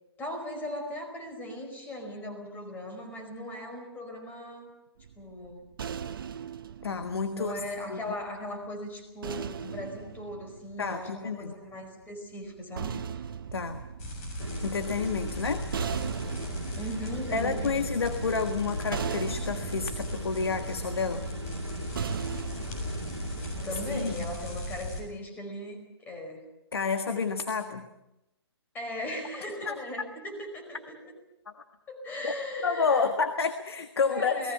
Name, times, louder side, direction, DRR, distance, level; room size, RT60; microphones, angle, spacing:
voice 1, 0.2-4.7 5.2-5.6 7.3-12.9 16.7-17.8 23.6-26.5 28.7-31.0 31.9-33.1 34.1-34.5, left 1 dB, 15° left, 4 dB, 4.9 m, -38 dB
sound 1, 5.0-8.3 9.2-11.5 12.4-23.5, right 7 dB, 55° right, 1.0 m, -39 dB
voice 2, 6.8-7.5 7.9-8.2 10.8-11.5 13.5-13.8 14.6-15.6 16.7-16.8 17.3-21.2 23.9-24.1 26.7-27.9 29.6-29.8 32.2-32.3 32.6-34.5, left 5 dB, 65° left, 8 dB, 1.6 m, -29 dB
sound 2, 14.0-25.0, left 1 dB, 35° left, 7.4 m, -37 dB
sound 3, 14.4-24.2, right 2 dB, 85° right, 1.7 m, -40 dB
29.5 x 19.5 x 5.7 m, 0.90 s
figure-of-eight pair, 130°, 14 cm